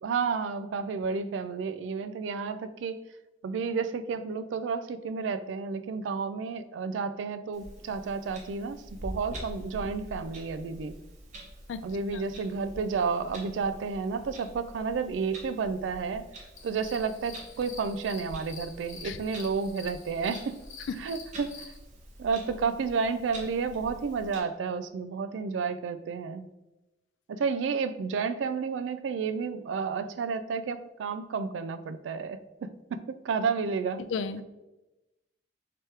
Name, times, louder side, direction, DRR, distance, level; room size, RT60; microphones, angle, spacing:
voice 1, 0.0-3.0 3.4-10.9 11.8-16.2 16.6-20.6 21.0-21.6 22.2-26.5 27.3-34.0, right 5 dB, 75° right, 12 dB, 0.3 m, -31 dB
Clock, 7.5-24.4, right 1 dB, 40° right, 0.9 m, -46 dB
sound 1, 16.6-21.8, left 5 dB, 90° left, 0.8 m, -48 dB
voice 2, 34.1-34.4, left 5 dB, 75° left, 12 dB, 0.3 m, -32 dB
4.7 x 2.9 x 3.2 m, 0.99 s
head